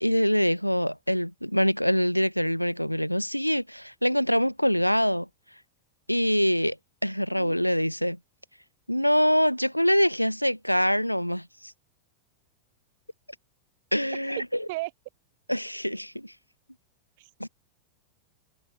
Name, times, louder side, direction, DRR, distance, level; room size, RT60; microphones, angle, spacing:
voice 1, 0.0-5.3 6.1-6.8 7.0-8.2 8.9-11.7 13.9-14.4 15.5-16.3 17.4-17.5, equal, 90° left, 0.6 m, -24 dB
voice 2, 7.3-7.6 14.2-14.4 14.7-14.9 17.2-17.3, right 22 dB, 50° right, 1.6 m, -35 dB
figure-of-eight pair, 90°, 0 cm